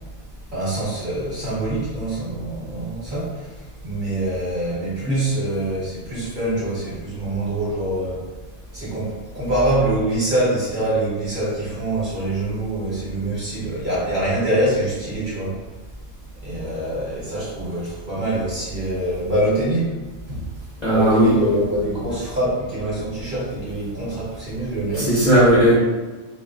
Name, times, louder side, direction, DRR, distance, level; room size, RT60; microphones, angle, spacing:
voice 1, 0.5-8.3 8.7-15.6 16.4-20.0 20.3-20.5 20.9-25.2, right 1 dB, 45° right, -8 dB, 1.0 m, -24 dB
voice 2, 20.8-21.3 25.0-25.7, right 1 dB, 40° left, -9 dB, 0.8 m, -15 dB
2.4 x 2.0 x 3.6 m, 1.2 s
omnidirectional pair, 1.3 m